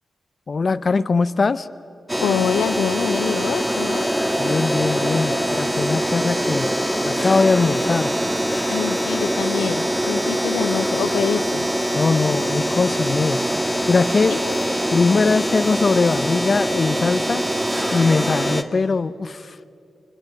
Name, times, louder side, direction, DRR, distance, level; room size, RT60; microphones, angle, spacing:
voice 1, 0.5-1.7 4.4-6.7 7.0-8.1 11.9-13.4 13.9-14.4 14.9-17.5 17.9-19.6, left 4 dB, 55° left, 14 dB, 0.8 m, -21 dB
sound 1, 2.1-18.6, equal, 10° right, 2.0 m, -23 dB
voice 2, 2.2-4.1 8.7-11.7 14.3-14.6, left 8 dB, 90° left, 9 dB, 0.8 m, -25 dB
26.5 x 25.0 x 9.1 m, 2.5 s
supercardioid pair, 40°, 0 cm